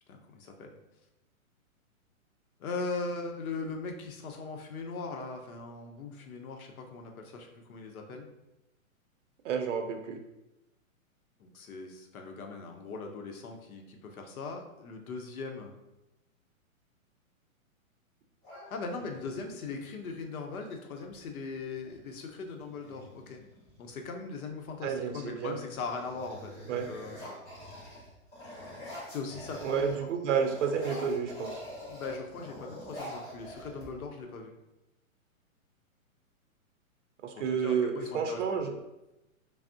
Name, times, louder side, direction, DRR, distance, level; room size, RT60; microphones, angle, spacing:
voice 1, 0.1-0.7 2.6-8.3 11.4-15.7 18.7-23.4 23.8-26.6 26.9-27.2 29.1-30.1 31.9-34.5 37.5-38.4, left 4 dB, 80° left, 3 dB, 0.7 m, -39 dB
voice 2, 9.4-10.2 24.8-25.6 26.7-26.9 29.6-31.6 37.2-38.7, right 6 dB, 60° right, 5 dB, 0.5 m, -30 dB
sound 1, 18.4-19.4 21.1-21.2 21.5-22.0 22.6-24.1 24.7-25.1 25.5-30.0 30.3-34.2, left 1 dB, 10° left, 1.0 m, -45 dB
3.3 x 2.0 x 2.5 m, 0.95 s
hypercardioid pair, 150°, 42 cm